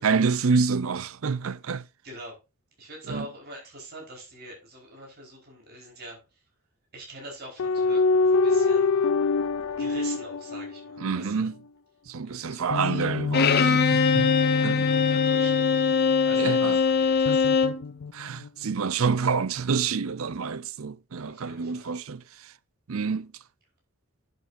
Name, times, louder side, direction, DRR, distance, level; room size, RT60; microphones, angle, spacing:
voice 1, 0.0-1.8 3.1-3.3 11.0-11.6 12.1-14.3 14.6-14.9 16.3-16.8 17.3-17.4 18.1-22.5 22.9-23.3, right 5 dB, 70° right, 0.6 m, -28 dB
voice 2, 2.0-2.3 2.8-6.2 6.9-8.9 9.8-11.5 12.2-13.2 14.3-15.8 16.2-17.6 21.2-21.9, right 1 dB, 50° right, 4.7 m, -44 dB
sound 1, 7.6-11.3 12.7-16.5 17.3-18.5, left 4 dB, 65° left, 0.4 m, -26 dB
Bowed string instrument, 13.3-17.8, left 5 dB, 50° left, 1.1 m, -22 dB
11.0 x 8.3 x 2.7 m
head